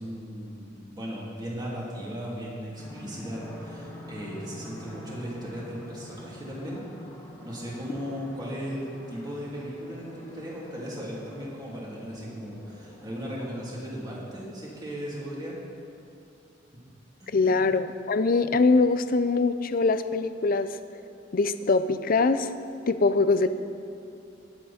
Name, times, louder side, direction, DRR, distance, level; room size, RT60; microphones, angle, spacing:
voice 1, 0.0-6.8 7.4-15.6 17.4-17.6, equal, 20° right, -5 dB, 2.9 m, -37 dB
sound 1, 2.8-13.9, left 1 dB, 15° left, 1.6 m, -46 dB
voice 2, 17.3-20.7 21.3-22.5 22.9-23.5, left 3 dB, 50° left, 11 dB, 0.5 m, -23 dB
20.0 x 8.1 x 4.3 m, 2.5 s
head